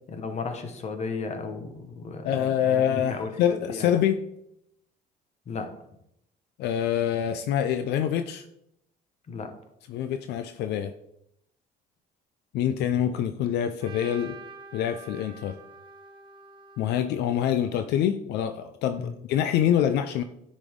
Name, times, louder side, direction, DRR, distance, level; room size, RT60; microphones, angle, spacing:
voice 1, 0.1-3.3 3.7-3.9 5.5-5.8 9.3-9.5 19.0-19.1, left 4 dB, 40° left, 6 dB, 1.3 m, -34 dB
voice 2, 2.2-4.3 6.6-8.5 9.9-10.9 12.5-14.4 14.7-15.6 16.8-20.2, left 10 dB, 80° left, 8 dB, 0.5 m, -25 dB
Trumpet, 13.8-18.0, right 3 dB, 30° right, 1.3 m, -47 dB
9.9 x 5.2 x 3.6 m, 0.79 s
cardioid pair, 110°, 17 cm